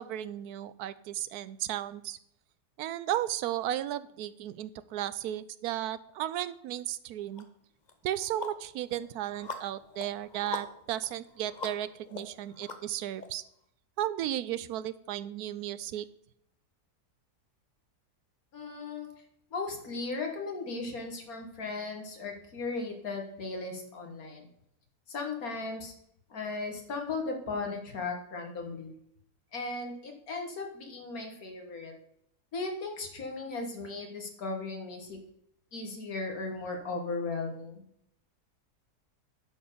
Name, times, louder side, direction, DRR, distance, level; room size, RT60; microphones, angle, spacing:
voice 1, 0.0-2.2 2.8-7.5 8.0-13.4 14.0-16.1, right 12 dB, 75° right, 15 dB, 1.1 m, -34 dB
sound 1, 7.4-7.5 7.9-13.3, left 4 dB, 35° left, 0.9 m, -43 dB
voice 2, 18.5-19.1 19.5-24.5 25.1-25.9 26.3-29.0 29.5-31.9 32.5-35.2 35.7-37.9, left 3 dB, 60° left, 3 dB, 2.0 m, -36 dB
10.5 x 4.5 x 6.8 m, 0.73 s
omnidirectional pair, 1.7 m